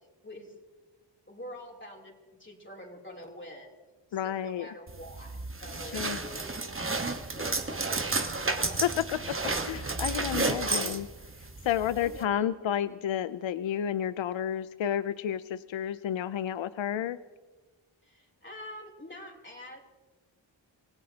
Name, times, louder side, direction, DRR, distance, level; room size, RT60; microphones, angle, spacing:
voice 1, 1.3-2.1 2.4-3.7 4.1-6.6 7.3-8.0 8.5-9.0 11.7-12.5 18.0-19.8, left 1 dB, 25° left, -1 dB, 3.3 m, -46 dB
voice 2, 4.1-4.7 5.9-6.2 8.8-9.2 9.6-11.1 11.7-17.2, left 10 dB, 75° left, 14 dB, 0.6 m, -31 dB
sound 1, 4.9-12.2, right 3 dB, 25° right, 1.2 m, -32 dB
27.0 x 17.0 x 2.9 m, 1.3 s
wide cardioid pair, 80°, 47 cm